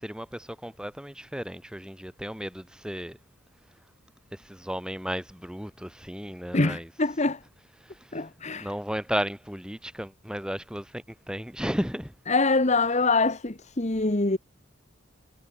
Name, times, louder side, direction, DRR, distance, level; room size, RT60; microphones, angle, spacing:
voice 1, 0.0-3.2 4.3-6.9 7.8-8.3 8.5-12.1, equal, 5° right, 3.7 m, -34 dB
voice 2, 6.5-7.4 8.1-8.7 12.3-14.4, left 3 dB, 35° left, 1.4 m, -24 dB
head